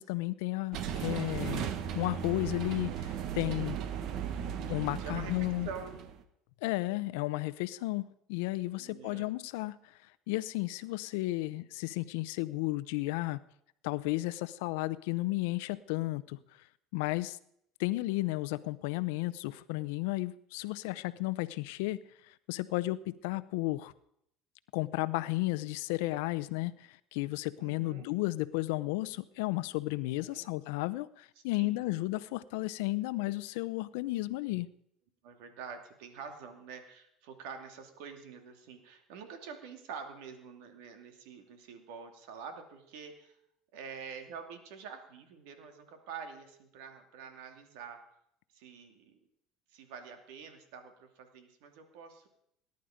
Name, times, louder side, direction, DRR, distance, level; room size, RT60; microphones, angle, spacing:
voice 1, 0.0-3.8 4.7-5.7 6.6-9.8 10.3-13.4 13.8-16.4 16.9-17.4 17.8-23.9 24.7-34.7, left 19 dB, 80° left, 16 dB, 0.7 m, -33 dB
sound 1, 0.7-6.2, right 8 dB, 60° right, 1.3 m, -36 dB
voice 2, 3.5-4.1 5.0-6.0 8.8-9.3 27.6-28.1 30.0-30.5 31.6-32.1 35.2-43.3 43.7-48.0 48.5-49.2 49.7-52.3, right 6 dB, 80° right, 6 dB, 2.6 m, -47 dB
18.5 x 11.0 x 5.1 m, 0.73 s
supercardioid pair, 115°, 0 cm